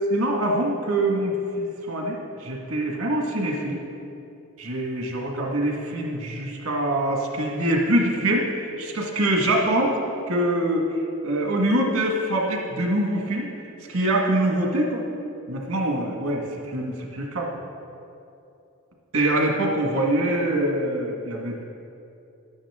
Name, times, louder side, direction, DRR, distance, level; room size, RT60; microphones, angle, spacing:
voice 1, 0.1-3.8 4.6-9.9 10.3-10.8 11.2-13.5 13.8-15.0 15.5-17.6 19.1-21.6, right 1 dB, 75° right, 0 dB, 1.7 m, -24 dB
13.0 x 11.0 x 3.7 m, 2.7 s
head